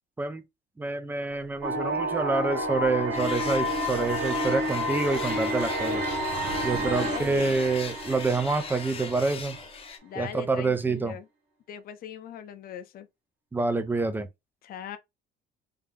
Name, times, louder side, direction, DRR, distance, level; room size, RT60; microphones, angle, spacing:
voice 1, 0.8-6.1 6.6-9.6 10.2-11.2 13.5-14.3, right 3 dB, 10° right, 0.5 m, -27 dB
Animal, 1.3-9.9, right 3 dB, 60° right, 1.3 m, -46 dB
sound 1, 1.6-9.6, equal, 85° right, 1.2 m, -30 dB
sound 2, 3.1-10.0, left 5 dB, 30° left, 0.8 m, -40 dB
voice 2, 6.7-7.5 10.0-11.3 11.7-13.1 14.6-15.0, left 9 dB, 55° left, 0.6 m, -40 dB
3.4 x 2.8 x 3.3 m
cardioid pair, 140°, 19 cm